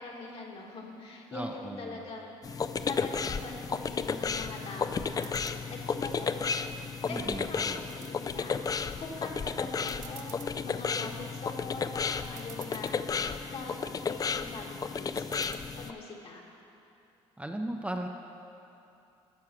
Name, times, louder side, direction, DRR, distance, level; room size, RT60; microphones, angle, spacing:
voice 1, 0.0-5.3 5.7-6.7 7.1-13.2 13.5-15.2 15.7-16.4, left 3 dB, 55° left, 0 dB, 1.6 m, -43 dB
voice 2, 1.3-2.0 7.0-7.8 17.4-18.1, right 1 dB, 10° right, 3 dB, 0.6 m, -37 dB
sound 1, 2.4-15.9, left 5 dB, 30° left, 0.4 m, -33 dB
sound 2, 5.2-5.6 6.1-6.9 7.3-8.1 8.6-9.1 9.4-9.5 9.8-10.5 11.1-11.4 12.0-12.1 12.2-13.0 13.5-14.0 15.2-15.6, right 11 dB, 80° right, 0.6 m, -50 dB
12.0 x 4.7 x 6.2 m, 2.8 s
supercardioid pair, 70°, 12 cm